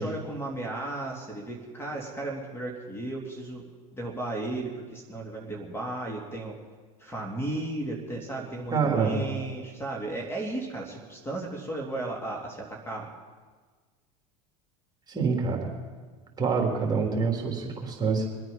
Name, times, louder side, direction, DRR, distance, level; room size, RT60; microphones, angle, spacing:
voice 1, 0.0-3.6 3.9-6.6 7.0-13.1, right 2 dB, 15° left, 0 dB, 2.9 m, -34 dB
voice 2, 8.7-9.2 15.1-15.7 16.4-18.3, right 5 dB, 20° right, 0 dB, 3.6 m, -26 dB
24.0 x 9.2 x 5.5 m, 1.4 s
hypercardioid pair, 90°, 18 cm